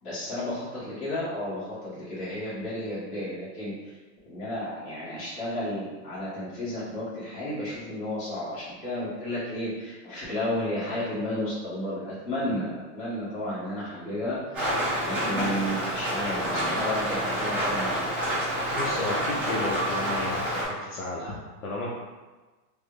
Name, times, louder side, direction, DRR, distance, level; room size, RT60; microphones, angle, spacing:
voice 1, 0.0-4.0 4.2-14.7 15.0-18.1, left 1 dB, 40° left, -9 dB, 1.4 m, -32 dB
Rain, 14.5-20.6, equal, 10° right, 0.5 m, -28 dB
voice 2, 18.7-20.5 20.8-21.9, left 2 dB, 55° left, -5 dB, 0.6 m, -33 dB
3.4 x 2.0 x 3.3 m, 1.2 s
supercardioid pair, 180°, 48 cm